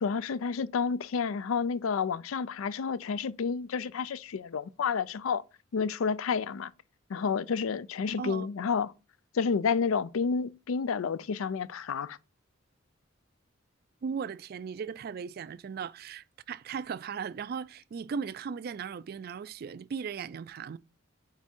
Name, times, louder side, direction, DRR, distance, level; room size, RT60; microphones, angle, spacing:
voice 1, 0.0-5.4 5.7-6.7 7.1-8.9 9.3-12.2, left 5 dB, 85° left, 0.4 m, -30 dB
voice 2, 8.2-8.5 14.0-20.8, right 6 dB, 50° right, 0.3 m, -37 dB
8.7 x 3.5 x 4.4 m
head